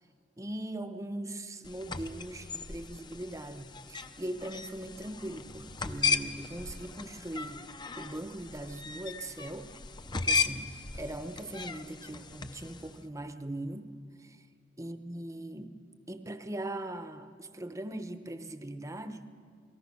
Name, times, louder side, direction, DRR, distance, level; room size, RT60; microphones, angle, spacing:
voice 1, 0.4-7.7 8.0-9.7 10.2-13.9 14.2-14.4 14.8-15.8 16.1-19.3, right 1 dB, 15° right, 9 dB, 0.9 m, -40 dB
sound 1, 1.6-13.0, left 5 dB, 25° left, 0.7 m, -36 dB
28.0 x 19.0 x 6.1 m, 2.2 s
head